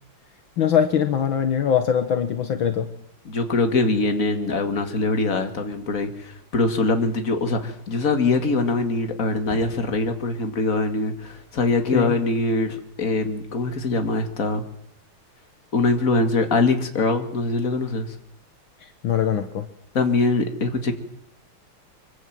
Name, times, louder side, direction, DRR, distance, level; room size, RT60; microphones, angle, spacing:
voice 1, 0.6-2.9 11.9-12.2 19.0-19.7, left 8 dB, 70° left, 8 dB, 1.9 m, -22 dB
voice 2, 3.2-14.6 15.7-18.1 19.9-20.9, left 3 dB, 40° left, 6 dB, 2.6 m, -23 dB
sound 1, 9.4-10.6 15.5-15.6, left 4 dB, 10° left, 7.5 m, -42 dB
24.5 x 24.0 x 7.7 m, 0.76 s
omnidirectional pair, 2.3 m